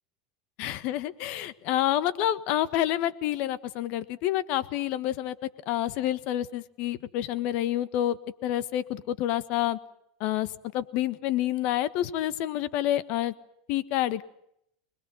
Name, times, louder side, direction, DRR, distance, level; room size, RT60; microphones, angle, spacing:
voice 1, 0.6-5.3 5.7-8.2 8.4-9.8 10.2-10.5 10.7-13.3 13.7-14.2, left 13 dB, 55° left, 14 dB, 1.5 m, -28 dB
25.5 x 21.0 x 7.9 m, 0.75 s
supercardioid pair, 135°, 3 cm